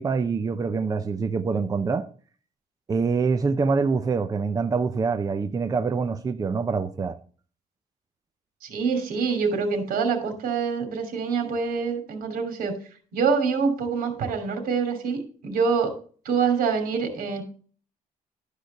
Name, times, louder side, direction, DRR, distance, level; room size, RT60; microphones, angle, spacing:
voice 1, 0.0-2.0 2.9-7.2, right 4 dB, 25° right, 0.6 m, -25 dB
voice 2, 8.6-12.8 13.1-15.9 16.2-17.4, right 5 dB, 85° right, 2.9 m, -25 dB
12.5 x 5.0 x 6.5 m
cardioid pair, 145°, 14 cm